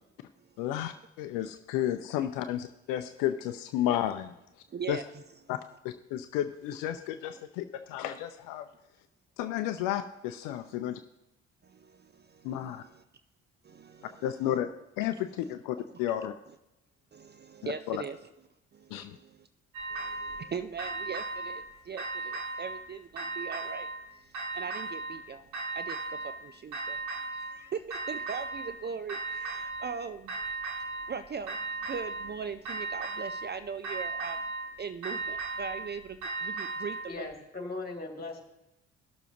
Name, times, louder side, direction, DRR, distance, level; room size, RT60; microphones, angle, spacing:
voice 1, 0.6-4.3 4.9-5.0 5.5-5.6 5.8-8.7 9.4-11.0 12.4-12.8 14.2-16.3 17.6-18.0 18.9-19.2, left 11 dB, 70° left, 9 dB, 0.6 m, -32 dB
voice 2, 4.7-5.2 10.6-10.7 11.6-13.0 13.6-14.3 15.4-15.5 15.9-16.0 17.1-18.2 18.7-19.5 19.9-23.9 24.2-24.3 24.5-25.5 25.7-27.0 27.3-30.3 31.1-34.4 34.8-37.3, right 6 dB, 30° right, 11 dB, 0.5 m, -40 dB
sound 1, 19.7-20.4 20.8-21.6 22.0-22.8 23.2-24.0 24.3-25.2 25.5-26.4 26.7-27.6 27.9-28.8 29.1-29.9 30.3-31.1 31.5-32.3 32.7-33.5 33.8-34.7 35.0-37.1, right 3 dB, 75° right, 1.9 m, -36 dB
voice 3, 37.1-38.4, left 3 dB, 25° left, 1 dB, 2.5 m, -38 dB
18.0 x 6.9 x 2.9 m, 0.91 s
hypercardioid pair, 45°, 34 cm